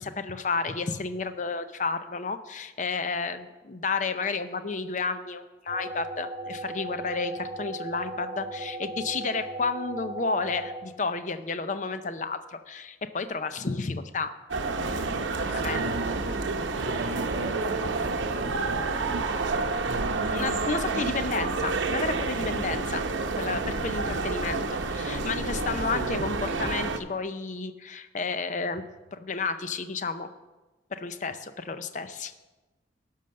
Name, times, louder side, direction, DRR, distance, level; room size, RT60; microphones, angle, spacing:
voice 1, 0.0-14.3 15.5-15.9 20.3-23.1 23.4-24.6 24.9-30.3 30.9-32.3, left 4 dB, 40° left, 10 dB, 0.5 m, -31 dB
sound 1, 5.7-10.8, right 2 dB, 20° right, 1.8 m, -37 dB
sound 2, 14.5-27.0, right 3 dB, 80° right, 0.8 m, -29 dB
voice 2, 15.4-16.4 16.8-19.3 19.9-21.2 22.4-22.6 22.9-23.0 25.9-26.4, right 3 dB, 60° right, 5 dB, 0.4 m, -37 dB
11.5 x 5.6 x 6.5 m, 1.2 s
head